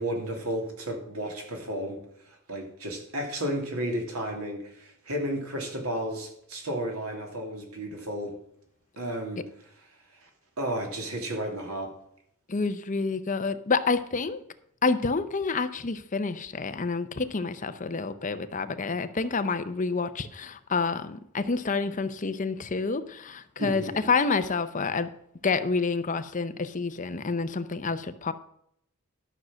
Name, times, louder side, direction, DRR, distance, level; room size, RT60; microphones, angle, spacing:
voice 1, 0.0-2.0 2.3-8.3 9.0-9.5 10.2-10.3 10.6-11.9 23.6-24.1, right 1 dB, 85° right, 2 dB, 2.9 m, -33 dB
voice 2, 12.5-14.4 14.8-25.1 25.4-28.3, left 4 dB, 35° left, 11 dB, 0.7 m, -28 dB
12.0 x 6.4 x 6.2 m, 0.71 s
head